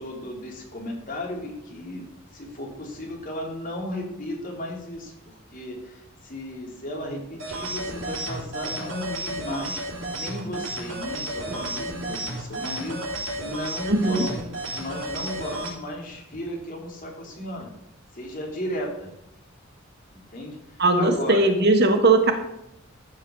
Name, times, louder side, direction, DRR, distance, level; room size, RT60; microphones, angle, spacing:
voice 1, 0.0-2.0 2.3-9.8 10.1-17.7 18.1-19.1 20.1-21.5, left 1 dB, 40° left, -1 dB, 3.2 m, -35 dB
sound 1, 7.4-15.7, right 2 dB, 70° right, 4.0 m, -32 dB
voice 2, 13.9-14.3 20.8-22.3, right 2 dB, 55° right, 6 dB, 1.4 m, -19 dB
14.0 x 5.6 x 6.4 m, 0.81 s
head